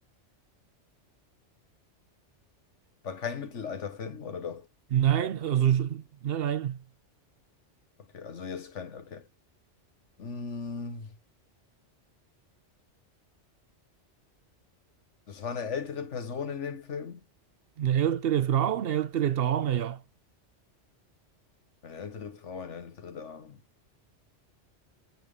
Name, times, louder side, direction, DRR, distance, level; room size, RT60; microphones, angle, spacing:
voice 1, 3.0-4.7 8.1-9.3 10.2-11.1 15.3-17.2 21.8-23.6, left 6 dB, 90° left, 1.6 m, -37 dB
voice 2, 4.9-6.8 17.8-20.0, right 10 dB, 60° right, 0.8 m, -26 dB
9.2 x 5.8 x 3.6 m
omnidirectional pair, 1.2 m